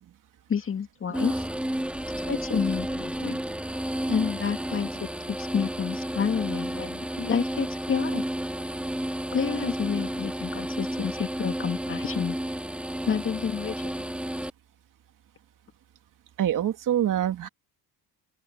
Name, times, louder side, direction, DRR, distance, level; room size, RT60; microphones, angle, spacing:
voice 1, 0.5-1.4 2.2-3.4 4.1-8.2 9.3-12.4 13.1-13.9, left 6 dB, 30° left, 2.2 m, -29 dB
sound 1, 1.1-14.5, right 1 dB, 5° right, 3.0 m, -31 dB
voice 2, 16.4-17.5, right 11 dB, 50° right, 2.3 m, -25 dB
open air
cardioid pair, 130°, 42 cm